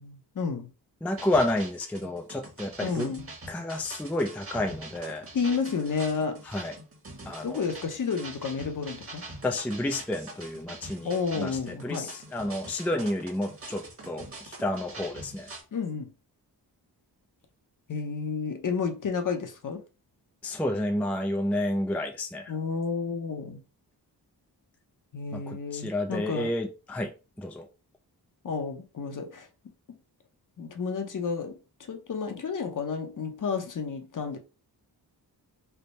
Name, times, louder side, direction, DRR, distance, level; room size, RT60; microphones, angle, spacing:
voice 1, 0.0-0.7 2.8-3.3 5.3-6.4 7.4-9.3 11.0-12.1 15.7-16.1 17.9-19.8 22.5-23.6 25.1-26.5 28.4-29.5 30.6-34.4, left 5 dB, 50° left, 0.8 m, -31 dB
voice 2, 1.0-3.1 3.5-5.3 6.5-6.7 7.3-7.6 9.4-11.1 11.4-15.5 20.4-22.5 25.3-27.6, left 1 dB, 5° left, 0.4 m, -30 dB
sound 1, 1.1-15.6, right 2 dB, 35° right, 1.3 m, -44 dB
3.4 x 2.2 x 4.0 m
wide cardioid pair, 100°, 40 cm